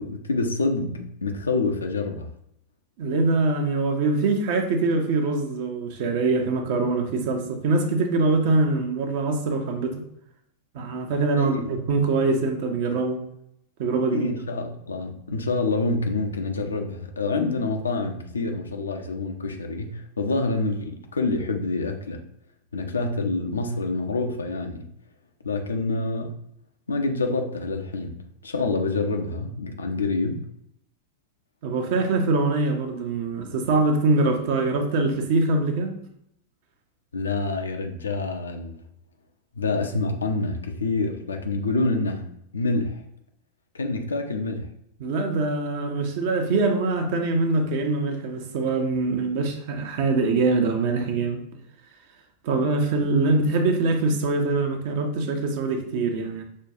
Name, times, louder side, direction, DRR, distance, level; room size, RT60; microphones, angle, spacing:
voice 1, 0.0-2.3 11.4-11.8 14.1-22.2 22.7-24.9 25.4-26.4 26.9-30.5 37.1-38.8 39.6-43.0 43.7-44.7, left 3 dB, 75° left, 5 dB, 0.5 m, -27 dB
voice 2, 3.0-10.0 10.7-13.2 13.8-14.3 31.6-36.0 45.0-51.4 52.4-56.4, right 3 dB, 50° right, 5 dB, 0.6 m, -23 dB
6.1 x 2.2 x 2.7 m, 0.74 s
figure-of-eight pair, 90°, 0 cm